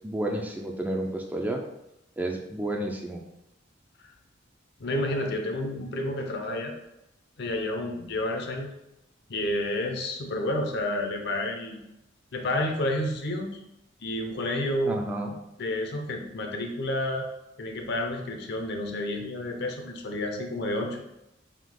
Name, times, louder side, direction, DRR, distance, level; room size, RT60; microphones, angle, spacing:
voice 1, 0.0-1.6 2.2-3.2 14.8-15.4, right 1 dB, 10° right, 1 dB, 0.3 m, -31 dB
voice 2, 4.8-6.7 7.4-8.7 9.3-11.8 12.3-13.6 14.0-15.0 15.6-17.3 17.6-21.0, left 1 dB, 60° left, 3 dB, 0.6 m, -30 dB
3.6 x 2.8 x 3.7 m, 0.88 s
head